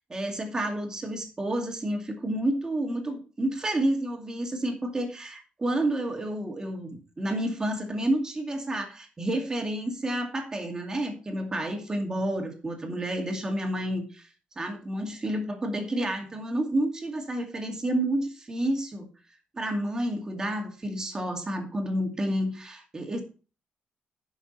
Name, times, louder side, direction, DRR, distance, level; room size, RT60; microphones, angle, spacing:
voice 1, 0.1-14.3 14.6-19.1 19.5-23.2, right 1 dB, 20° right, 4 dB, 2.3 m, -30 dB
11.0 x 6.2 x 4.2 m, 0.35 s
cardioid pair, 130°, 3 cm